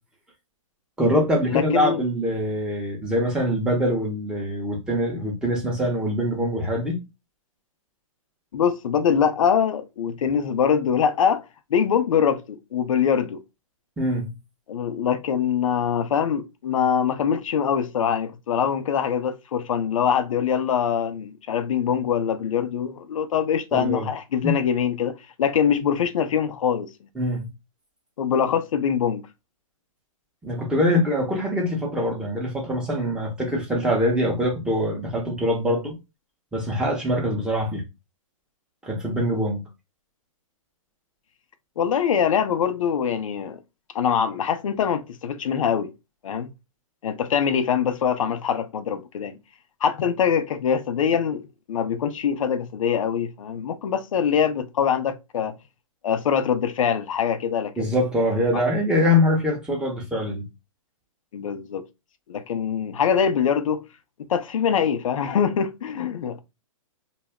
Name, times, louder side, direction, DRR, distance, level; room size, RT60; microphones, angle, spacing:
voice 1, 1.0-7.0 14.0-14.3 23.7-24.1 24.4-24.6 27.2-27.4 30.4-35.9 36.5-37.8 38.8-39.6 57.8-60.4, left 1 dB, 5° right, 0.7 m, -23 dB
voice 2, 1.5-2.0 8.5-11.5 11.7-13.4 14.7-26.9 28.2-29.2 41.8-43.6 43.9-45.9 46.2-46.5 47.0-49.4 49.8-55.5 56.0-57.9 58.5-58.6 61.3-61.9 62.3-63.8 64.3-66.4, left 7 dB, 65° left, 0.5 m, -23 dB
2.3 x 2.0 x 3.4 m
hypercardioid pair, 140°, 18 cm